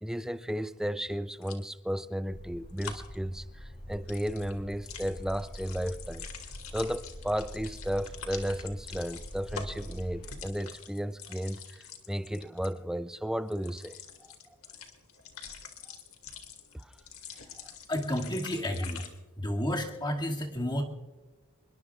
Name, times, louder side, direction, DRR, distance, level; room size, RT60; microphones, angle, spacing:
voice 1, 0.0-6.3 6.7-14.0 16.7-16.9, equal, 5° right, 0.4 m, -34 dB
sound 1, 1.4-1.6 2.8-3.1 3.9-12.7 13.5-19.1, left 7 dB, 90° left, 2.2 m, -46 dB
sound 2, 2.3-10.4, equal, 45° left, 2.4 m, -45 dB
voice 2, 17.9-19.0 19.4-20.8, equal, 20° left, 2.2 m, -31 dB
26.0 x 21.5 x 2.4 m
head